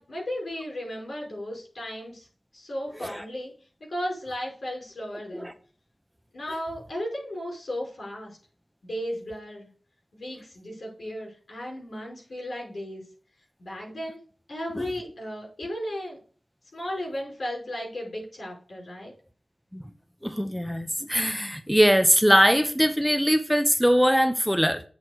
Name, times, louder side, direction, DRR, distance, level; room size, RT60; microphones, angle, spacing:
voice 1, 0.0-2.3 2.5-3.5 3.9-5.5 6.3-8.4 8.8-9.7 10.1-13.0 13.6-14.2 14.5-16.2 16.7-19.1, equal, 75° left, 5.3 m, -35 dB
voice 2, 20.2-24.8, equal, ahead, 0.7 m, -21 dB
8.0 x 4.3 x 6.4 m
wide cardioid pair, 65°, 0 cm